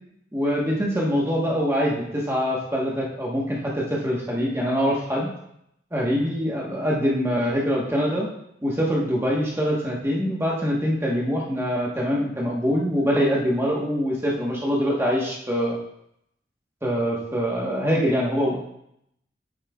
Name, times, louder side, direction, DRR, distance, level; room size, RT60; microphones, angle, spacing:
voice 1, 0.3-5.3 5.9-8.3 8.6-15.8 16.8-18.6, equal, 15° right, -3 dB, 1.2 m, -24 dB
8.6 x 7.8 x 2.3 m, 0.75 s
head